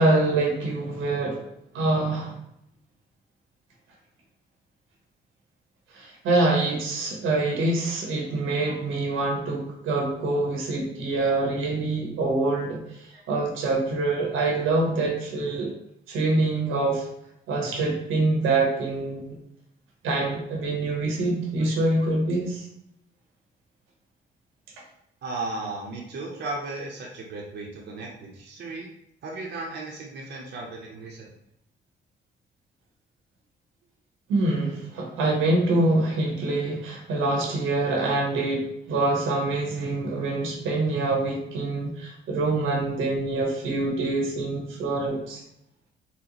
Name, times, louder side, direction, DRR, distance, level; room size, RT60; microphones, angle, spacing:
voice 1, 0.0-1.4 1.7-2.3 5.9-15.7 16.1-17.1 17.5-19.3 20.0-22.6 34.3-45.4, right 2 dB, 90° right, -1 dB, 1.0 m, -25 dB
voice 2, 21.6-22.1 25.2-28.9 29.2-31.3, right 2 dB, 60° right, -2 dB, 0.7 m, -36 dB
4.1 x 2.1 x 2.9 m, 0.76 s
cardioid pair, 90°, 20 cm